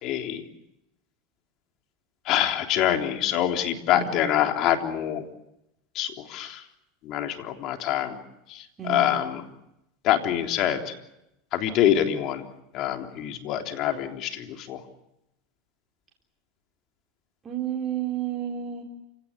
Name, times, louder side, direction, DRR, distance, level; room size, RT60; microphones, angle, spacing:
voice 1, 0.0-0.4 2.3-5.2 6.0-6.6 7.0-8.2 8.5-9.4 10.0-11.0 11.5-12.5 12.7-14.8, left 11 dB, 50° left, 4 dB, 3.6 m, -25 dB
voice 2, 3.9-4.3 8.8-9.2 17.4-18.8, right 10 dB, 25° right, -1 dB, 4.0 m, -31 dB
29.0 x 17.5 x 9.9 m, 0.86 s
supercardioid pair, 115°, 0 cm